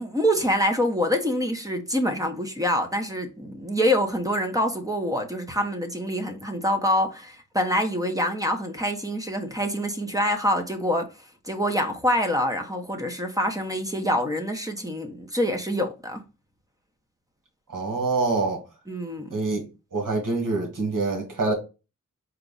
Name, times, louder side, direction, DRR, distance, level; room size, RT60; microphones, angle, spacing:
voice 1, 0.0-11.1 11.4-16.2 18.9-19.4, equal, 10° right, 1.0 m, -26 dB
voice 2, 17.7-18.6 19.3-19.7 19.9-21.5, right 3 dB, 85° right, 1.7 m, -25 dB
4.5 x 2.5 x 3.9 m
wide cardioid pair, 80°, 31 cm